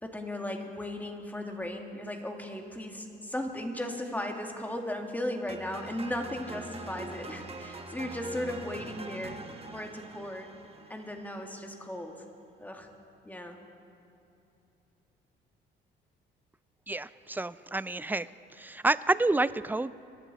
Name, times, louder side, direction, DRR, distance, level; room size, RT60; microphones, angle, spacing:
voice 1, 0.0-10.5 10.9-12.2 12.6-12.9 13.2-13.6, left 1 dB, 10° left, 2 dB, 2.0 m, -36 dB
sound 1, 5.5-11.6, right 3 dB, 30° right, 1.4 m, -44 dB
voice 2, 16.9-18.3 18.6-19.9, right 2 dB, 10° right, 16 dB, 0.4 m, -28 dB
26.0 x 12.0 x 4.1 m, 2.7 s
cardioid pair, 90°, 20 cm